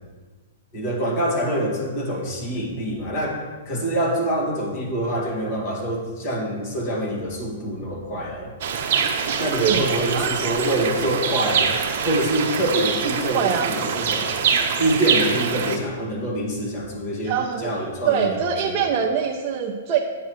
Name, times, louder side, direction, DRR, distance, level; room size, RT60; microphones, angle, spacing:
voice 1, 0.7-8.5 9.4-11.8 12.0-14.4 14.8-18.9, right 1 dB, 40° left, -2 dB, 2.2 m, -25 dB
sound 1, 8.6-15.8, right 6 dB, 60° right, 1.0 m, -24 dB
voice 2, 9.4-10.4 13.3-13.7 17.2-17.7 18.1-20.0, right 8 dB, 35° right, -2 dB, 0.7 m, -24 dB
9.1 x 7.7 x 3.2 m, 1.4 s
hypercardioid pair, 140°, 0 cm